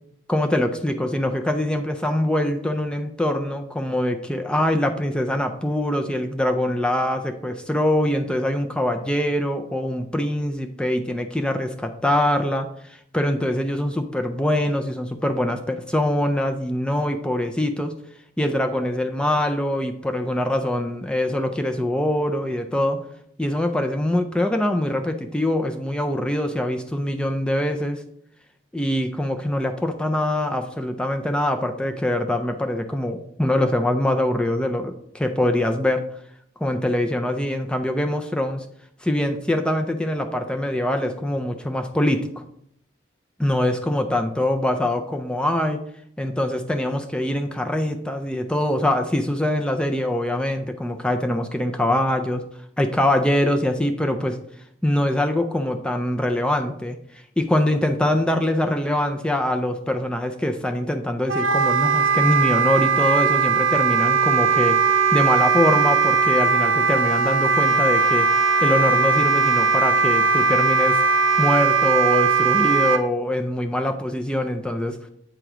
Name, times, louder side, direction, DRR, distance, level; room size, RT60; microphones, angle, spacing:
voice 1, 0.3-12.7 13.1-17.9 18.4-23.0 23.4-28.0 28.7-36.0 36.6-38.7 39.0-42.3 43.4-45.8 46.2-52.4 52.8-54.4 54.8-57.0 57.4-64.8 65.1-68.3 68.6-71.0 71.4-75.0, left 1 dB, 5° left, 6 dB, 0.3 m, -23 dB
Wind instrument woodwind instrument, 61.3-73.0, right 5 dB, 75° right, 0.5 m, -19 dB
7.8 x 3.0 x 4.8 m, 0.71 s
head